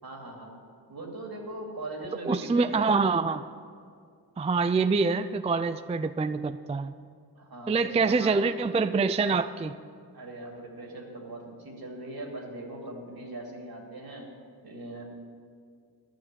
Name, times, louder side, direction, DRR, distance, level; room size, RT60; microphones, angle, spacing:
voice 1, 0.0-0.5 0.9-2.9 7.3-8.5 10.1-14.3 14.6-15.0, right 2 dB, 65° right, 0 dB, 2.6 m, -40 dB
voice 2, 2.2-3.4 4.4-6.9 7.7-9.8, right 4 dB, 20° right, 12 dB, 0.3 m, -25 dB
12.0 x 6.6 x 9.1 m, 2.2 s
wide cardioid pair, 80°, 40 cm